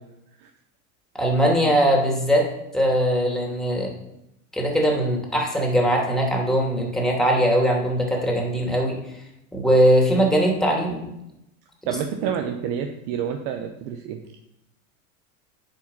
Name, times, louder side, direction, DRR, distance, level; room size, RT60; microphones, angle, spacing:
voice 1, 1.1-2.5 2.7-3.9 4.5-9.0 9.5-11.1, equal, ahead, -1 dB, 2.6 m, -20 dB
voice 2, 11.9-14.2, right 8 dB, 55° right, 5 dB, 1.0 m, -28 dB
8.8 x 5.2 x 5.7 m, 0.85 s
hypercardioid pair, 100°, 43 cm